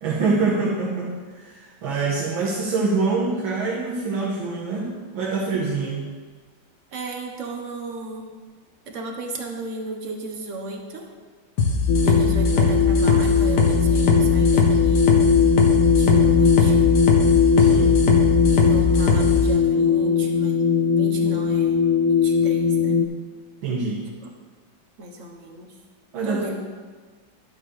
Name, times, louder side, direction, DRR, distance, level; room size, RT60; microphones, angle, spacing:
voice 1, 0.0-6.0 17.6-18.0 20.3-20.4 23.6-24.0 26.1-26.5, right 4 dB, 90° right, -4 dB, 1.8 m, -25 dB
voice 2, 6.9-8.3 8.9-11.1 12.0-15.1 15.9-16.9 18.5-23.0 25.0-25.7 26.2-26.6, right 2 dB, 50° right, 2 dB, 1.1 m, -35 dB
sound 1, 11.6-19.4, left 3 dB, 65° left, 1.6 m, -20 dB
sound 2, 11.9-23.1, left 6 dB, 80° left, 0.8 m, -19 dB
11.0 x 7.6 x 3.2 m, 1.4 s
omnidirectional pair, 2.1 m